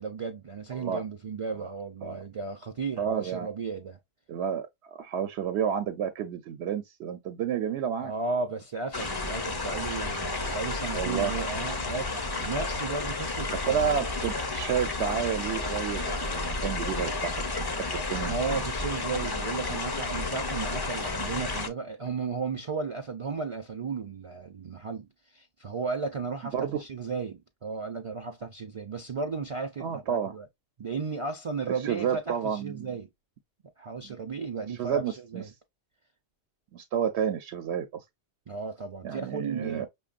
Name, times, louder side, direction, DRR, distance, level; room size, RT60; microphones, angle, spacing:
voice 1, 0.0-4.0 8.0-14.0 18.2-30.5 30.8-33.1 33.8-35.5 38.5-39.9, right 4 dB, 45° right, 0.4 m, -34 dB
voice 2, 0.7-1.0 1.6-1.7 2.0-2.2 3.0-3.5 4.3-8.1 10.9-11.3 13.6-17.7 17.9-18.6 26.5-26.8 29.8-30.3 31.7-32.9 34.0-34.2 34.8-35.4 36.7-38.0 39.0-39.9, right 8 dB, 90° right, 0.9 m, -30 dB
sound 1, 8.9-21.7, left 3 dB, 30° left, 0.4 m, -32 dB
5.7 x 2.3 x 2.3 m
omnidirectional pair, 1.1 m